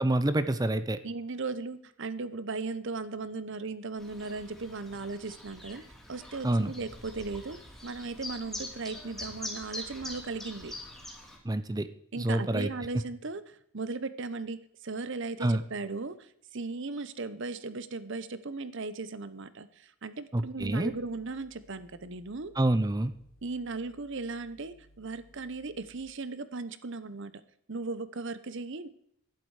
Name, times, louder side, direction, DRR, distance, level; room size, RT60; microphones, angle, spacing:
voice 1, 0.0-1.0 6.4-6.7 11.4-11.9 12.2-12.7 15.4-15.6 20.3-20.9 22.6-23.1, right 1 dB, 15° right, 12 dB, 0.6 m, -27 dB
voice 2, 1.0-5.8 6.1-10.7 12.1-22.5 23.4-27.4 27.7-28.9, right 3 dB, 55° right, 14 dB, 0.8 m, -37 dB
Chirp tweet, 4.0-11.4, left 1 dB, ahead, 2.9 m, -44 dB
sound 1, 20.6-26.0, equal, 60° left, 2.1 m, -61 dB
11.5 x 11.5 x 4.8 m, 0.70 s
head